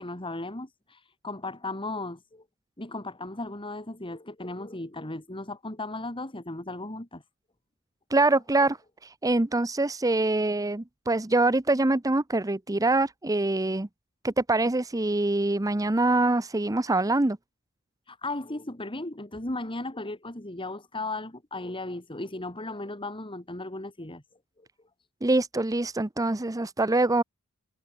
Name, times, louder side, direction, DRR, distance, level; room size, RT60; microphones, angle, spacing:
voice 1, 0.0-2.4 2.8-7.2 18.1-24.2 24.6-24.7, left 2 dB, 25° left, 2.7 m, -36 dB
voice 2, 8.1-8.8 9.0-13.9 14.2-17.4 25.2-27.2, right 2 dB, 15° right, 0.7 m, -24 dB
head